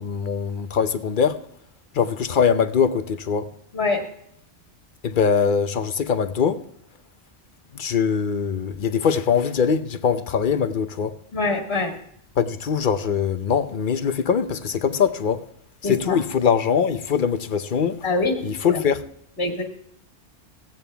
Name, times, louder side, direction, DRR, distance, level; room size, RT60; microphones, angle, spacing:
voice 1, 0.0-1.4 1.9-3.5 5.0-6.6 7.7-11.1 12.4-15.4 15.8-18.0 18.4-19.0, left 6 dB, 55° left, 0.8 m, -22 dB
voice 2, 11.3-11.9 15.8-16.2 18.0-18.3 19.4-19.7, left 3 dB, 70° left, 2.3 m, -24 dB
16.0 x 8.9 x 3.4 m
omnidirectional pair, 1.1 m